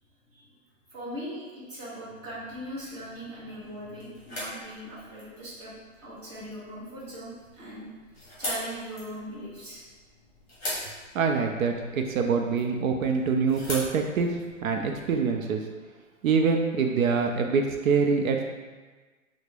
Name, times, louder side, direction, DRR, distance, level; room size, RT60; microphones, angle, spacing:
voice 1, 0.9-5.7 6.0-7.9 8.4-9.8, equal, 20° right, -9 dB, 0.9 m, -39 dB
sound 1, 2.3-15.2, left 1 dB, 15° left, 1.2 m, -42 dB
voice 2, 11.1-14.4 14.6-15.7 16.2-18.4, right 5 dB, 80° right, 3 dB, 0.5 m, -25 dB
3.3 x 2.1 x 3.3 m, 1.3 s
hypercardioid pair, 160°, 40 cm